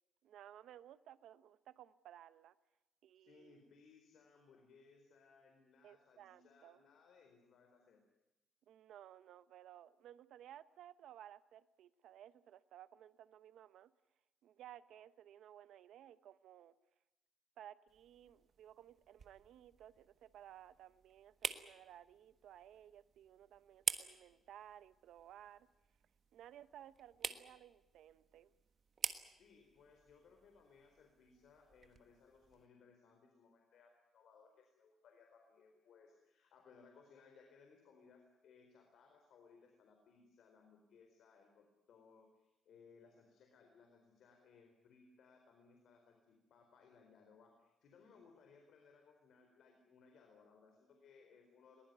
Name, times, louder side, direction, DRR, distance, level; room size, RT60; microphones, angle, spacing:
voice 1, 0.2-2.5 3.0-3.6 5.8-6.8 8.7-13.9 14.4-16.7 17.6-25.7 26.3-28.5, right 11 dB, 80° right, 15 dB, 1.0 m, -58 dB
voice 2, 3.1-8.0 29.3-51.9, left 5 dB, 65° left, 3 dB, 4.3 m, -65 dB
sound 1, 17.9-32.7, right 6 dB, 40° right, 1.4 m, -48 dB
22.0 x 20.5 x 9.4 m, 0.95 s
cardioid pair, 150°, 0 cm